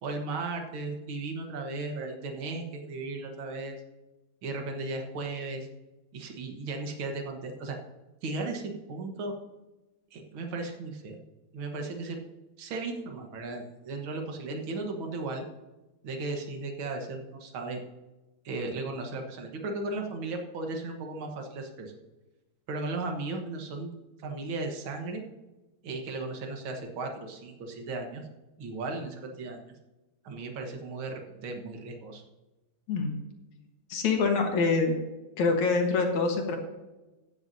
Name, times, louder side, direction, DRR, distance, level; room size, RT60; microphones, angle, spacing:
voice 1, 0.0-3.8 4.4-5.7 6.1-7.8 8.2-9.3 10.1-11.2 11.5-12.2 12.6-15.4 16.0-17.8 18.4-21.9 22.7-23.9 24.2-25.2 25.8-28.2 28.6-29.7 30.2-32.2, right 3 dB, 65° right, 3 dB, 1.3 m, -36 dB
voice 2, 33.9-34.9 35.4-36.6, left 4 dB, 60° left, 3 dB, 2.4 m, -25 dB
15.0 x 10.5 x 2.8 m, 1.1 s
omnidirectional pair, 4.3 m